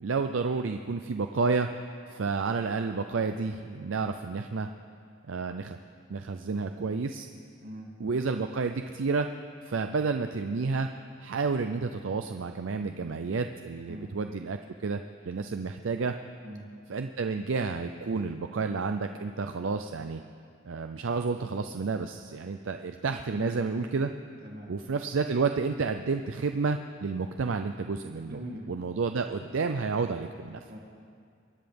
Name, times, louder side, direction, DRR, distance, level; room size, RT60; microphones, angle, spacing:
voice 1, 0.0-1.7 2.1-4.7 5.3-5.8 6.1-7.3 8.0-9.3 9.6-10.9 11.2-16.2 16.9-20.2 20.6-24.1 24.7-28.4 28.7-30.6, right 4 dB, 85° right, 7 dB, 0.5 m, -30 dB
voice 2, 7.6-7.9 13.9-14.1 16.4-16.7 23.3-23.6 24.4-24.7 28.3-28.7 30.7-30.8, equal, 50° right, 0 dB, 2.1 m, -41 dB
24.0 x 9.9 x 5.2 m, 2.3 s
head